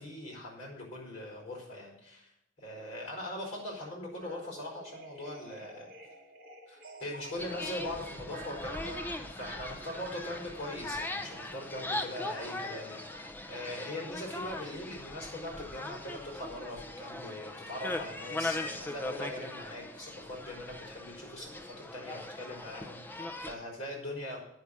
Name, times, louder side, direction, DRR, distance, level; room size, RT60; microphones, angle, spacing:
voice 1, 0.0-2.3 2.6-5.9 6.7-9.0 9.3-13.0 13.5-24.4, left 1 dB, 35° left, -1 dB, 4.9 m, -41 dB
sound 1, 4.2-13.3, right 2 dB, 45° right, 1.7 m, -50 dB
sound 2, 7.3-23.5, left 2 dB, 10° left, 0.7 m, -40 dB
9.5 x 6.0 x 8.4 m, 0.84 s
head